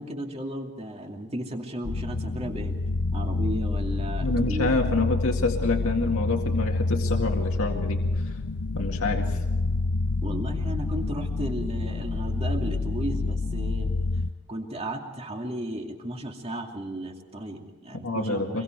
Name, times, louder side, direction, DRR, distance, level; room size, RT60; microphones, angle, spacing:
voice 1, 0.0-2.8 3.1-4.7 10.2-13.9 14.5-18.6, right 1 dB, 25° right, 2 dB, 2.6 m, -34 dB
sound 1, 1.8-14.3, left 3 dB, 90° left, 0.7 m, -28 dB
voice 2, 4.2-8.3 8.7-9.4 18.0-18.6, left 3 dB, 70° left, 1 dB, 2.1 m, -27 dB
26.0 x 23.0 x 4.7 m, 1.3 s
head